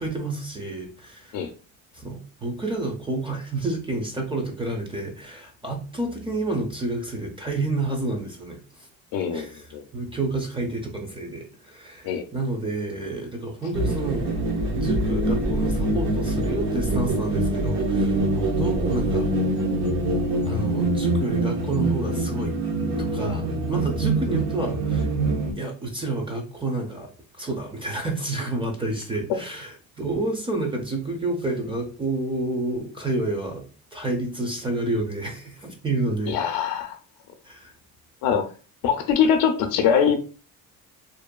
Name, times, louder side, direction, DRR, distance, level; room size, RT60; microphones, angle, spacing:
voice 1, 0.0-1.4 1.9-8.9 9.3-14.4 14.7-18.3 18.6-19.3 20.5-22.6 22.9-25.1 25.6-27.1 27.4-33.7 33.9-36.4 37.4-37.7, right 2 dB, 15° right, 1 dB, 0.5 m, -29 dB
voice 2, 9.1-9.5 9.7-9.8 12.0-12.2 36.3-37.0 38.2-38.5 38.8-40.2, left 7 dB, 75° left, 5 dB, 0.5 m, -22 dB
sound 1, 13.7-25.5, right 2 dB, 50° right, 0.8 m, -24 dB
2.6 x 2.3 x 2.2 m, 0.36 s
cardioid pair, 115°, 36 cm